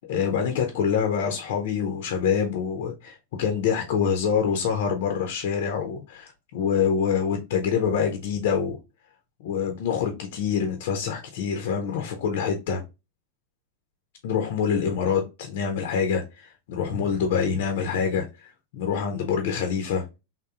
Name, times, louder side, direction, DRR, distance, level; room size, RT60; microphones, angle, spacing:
voice 1, 0.1-8.8 9.4-12.8 14.2-20.0, left 7 dB, 55° left, 0.5 m, -26 dB
3.6 x 2.6 x 2.3 m
figure-of-eight pair, 90°, 0 cm